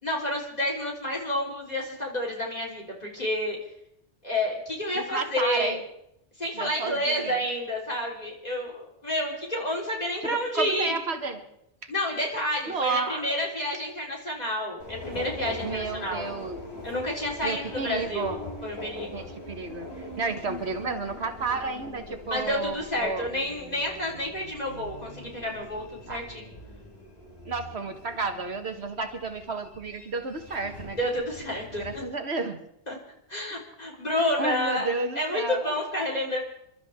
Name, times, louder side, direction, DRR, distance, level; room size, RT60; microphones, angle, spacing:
voice 1, 0.0-3.6 4.2-5.8 6.4-10.9 11.9-16.3 16.8-19.2 22.3-26.5 31.0-31.9 32.9-33.0 33.3-36.4, left 1 dB, 35° left, -2 dB, 4.0 m, -30 dB
voice 2, 4.9-5.8 6.5-7.4 10.2-11.4 12.7-13.3 15.6-16.6 17.4-18.4 19.1-19.9 20.2-23.3 26.1-26.2 27.4-31.0 31.8-32.6 34.2-35.7, right 4 dB, 65° right, 6 dB, 1.6 m, -32 dB
Subway metro underground, 14.8-32.0, left 1 dB, 60° left, 3.1 m, -42 dB
29.5 x 12.5 x 3.6 m, 0.78 s
omnidirectional pair, 1.2 m